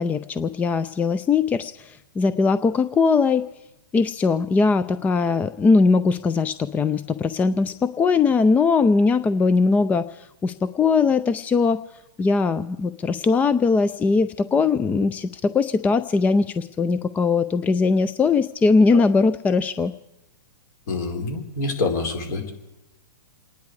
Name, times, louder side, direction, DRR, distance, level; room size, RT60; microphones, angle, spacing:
voice 1, 0.0-3.5 3.9-11.8 12.2-19.9, left 4 dB, 15° left, 13 dB, 0.4 m, -20 dB
voice 2, 20.9-22.5, left 3 dB, 55° left, 3 dB, 4.3 m, -26 dB
28.0 x 10.5 x 4.8 m, 0.94 s
hypercardioid pair, 130°, 12 cm